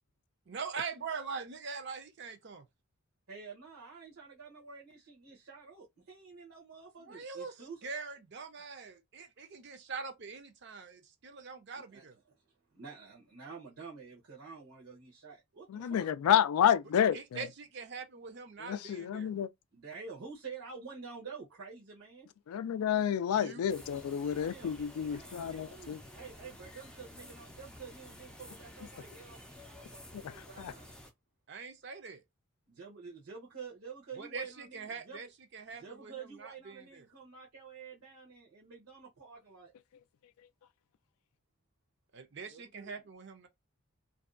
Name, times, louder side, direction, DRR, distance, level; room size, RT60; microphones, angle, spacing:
voice 1, 0.5-2.6 7.1-12.2 17.1-19.3 23.3-23.7 31.5-32.2 34.2-37.1 42.1-43.5, right 5 dB, 50° right, 0.5 m, -43 dB
voice 2, 3.3-7.8 11.9-12.0 12.3-12.4 12.7-16.1 19.7-22.3 24.3-24.8 25.1-30.9 32.7-35.2 35.8-39.7 42.5-42.9, right 5 dB, 75° right, 0.9 m, -49 dB
voice 3, 15.7-17.4 18.6-19.5 22.5-26.0 30.1-30.3 30.6-30.7, left 9 dB, 80° left, 0.3 m, -30 dB
sound 1, 23.7-31.1, left 1 dB, 5° left, 0.4 m, -51 dB
2.6 x 2.2 x 2.4 m
head